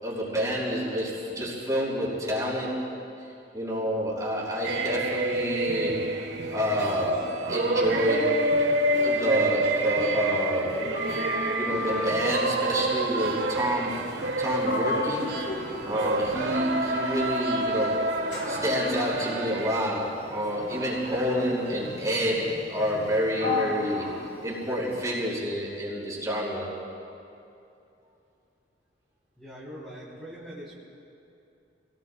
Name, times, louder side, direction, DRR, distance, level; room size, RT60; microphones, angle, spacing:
voice 1, 0.0-2.8 3.5-6.0 6.5-8.3 9.0-10.8 11.6-14.0 14.4-15.4 15.8-18.0 18.5-24.1 24.4-26.7, equal, 20° right, -5 dB, 5.0 m, -28 dB
sound 1, 4.6-21.8, right 2 dB, 80° right, 1.3 m, -29 dB
Sliding door, 10.7-12.3 14.1-14.4 14.6-17.1 17.7-25.2, left 2 dB, 75° left, 3.8 m, -36 dB
voice 2, 29.4-30.7, equal, ahead, -10 dB, 3.4 m, -42 dB
30.0 x 19.5 x 2.3 m, 2.7 s
head